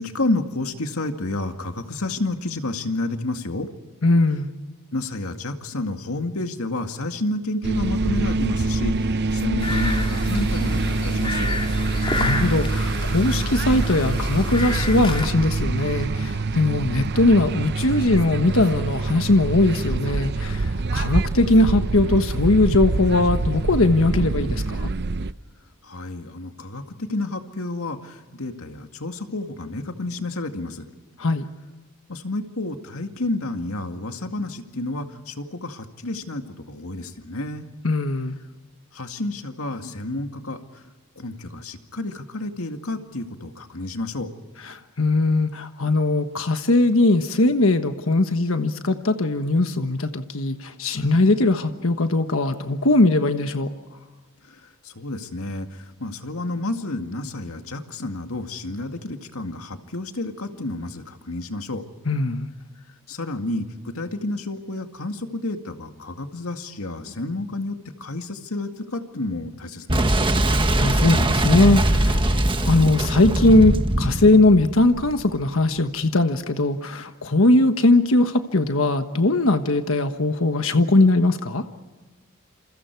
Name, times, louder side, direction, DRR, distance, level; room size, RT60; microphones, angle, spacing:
voice 1, 0.0-3.7 4.9-11.5 25.8-30.9 32.1-37.7 38.9-40.8 41.2-44.3 54.5-61.8 63.1-70.2, left 2 dB, 85° left, 6 dB, 2.1 m, -30 dB
voice 2, 4.0-4.5 12.2-24.9 31.2-31.4 37.8-38.3 44.6-53.7 62.1-62.5 70.8-72.2 72.6-81.6, left 2 dB, 70° left, 8 dB, 1.3 m, -20 dB
sound 1, 7.6-25.3, right 3 dB, 50° right, 0.7 m, -25 dB
sound 2, 9.6-15.3, left 1 dB, 25° left, 3.0 m, -27 dB
Boom, 69.9-75.5, right 1 dB, 25° right, 1.4 m, -21 dB
28.5 x 28.0 x 4.7 m, 1.3 s
head